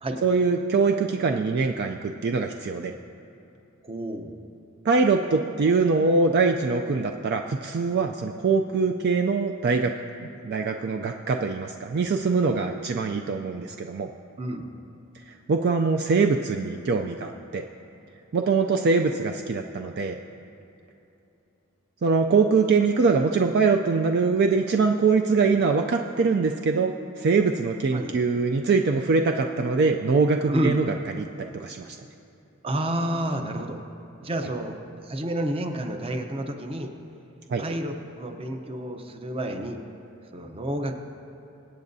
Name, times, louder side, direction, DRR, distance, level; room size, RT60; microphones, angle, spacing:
voice 1, 0.2-2.9 4.9-9.9 10.4-14.1 15.5-17.6 18.3-20.2 22.0-30.8 31.2-32.0 37.5-37.6, right 4 dB, 50° right, 4 dB, 0.4 m, -23 dB
voice 2, 3.8-4.3 14.4-14.7 27.9-28.1 30.5-30.8 32.6-33.8 34.2-36.9 37.6-39.8 40.3-41.0, right 1 dB, 25° right, 5 dB, 0.7 m, -29 dB
23.5 x 8.5 x 2.7 m, 2.9 s
head